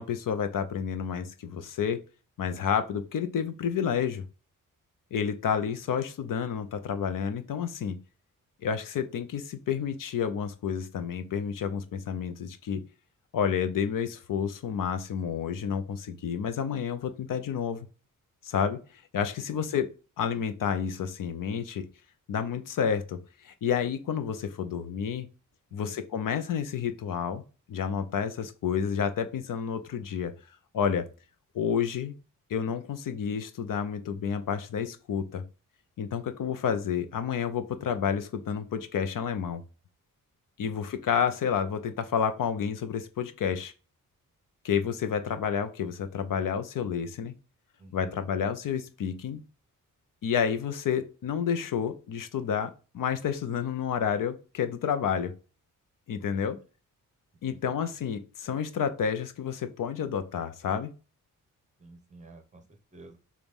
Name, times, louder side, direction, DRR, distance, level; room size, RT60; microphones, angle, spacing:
voice 1, 0.0-2.0 2.4-4.2 5.1-8.0 8.6-12.8 13.3-17.9 18.4-19.9 20.2-21.9 22.3-25.3 25.7-27.4 27.7-30.3 30.7-31.1 31.5-32.1 32.5-35.4 36.0-39.6 40.6-43.7 44.6-47.3 47.9-49.4 50.2-55.3 56.1-56.6 57.4-60.9, left 7 dB, 70° left, 9 dB, 0.8 m, -30 dB
voice 2, 25.7-26.0 47.8-48.2 56.3-56.5 57.5-57.8 61.8-62.6 62.9-63.2, right 2 dB, 20° right, 5 dB, 1.1 m, -52 dB
7.1 x 2.5 x 5.3 m, 0.34 s
wide cardioid pair, 165°, 33 cm